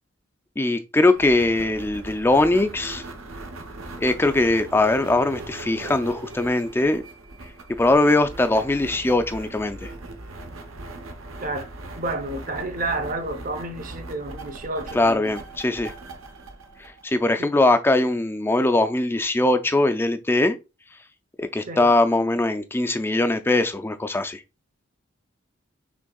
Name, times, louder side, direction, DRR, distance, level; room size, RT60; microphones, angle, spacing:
voice 1, 0.6-3.1 4.0-7.0 7.8-9.9 14.9-15.9 16.8-20.6 21.4-24.4, left 2 dB, 10° left, 0.3 m, -21 dB
sound 1, 1.1-17.6, right 2 dB, 80° right, 0.8 m, -39 dB
voice 2, 12.0-15.3 17.4-17.5 21.7-21.9, right 2 dB, 40° right, 0.7 m, -30 dB
6.2 x 3.3 x 2.3 m
head